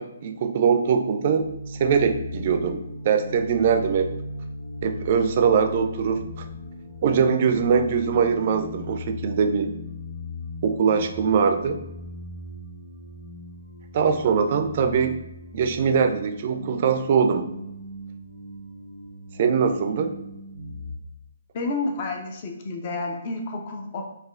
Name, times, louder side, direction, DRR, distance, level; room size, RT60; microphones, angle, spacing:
voice 1, 0.0-1.4 1.8-4.1 4.8-6.4 7.0-9.7 10.6-11.9 13.9-15.2 15.5-17.5 19.4-20.1, right 6 dB, 45° right, 6 dB, 0.4 m, -22 dB
sound 1, 1.3-20.9, left 2 dB, 70° left, 1.0 m, -38 dB
voice 2, 21.5-24.0, left 3 dB, 40° left, 3 dB, 0.5 m, -30 dB
4.0 x 2.4 x 2.3 m, 0.88 s
figure-of-eight pair, 135°, 0 cm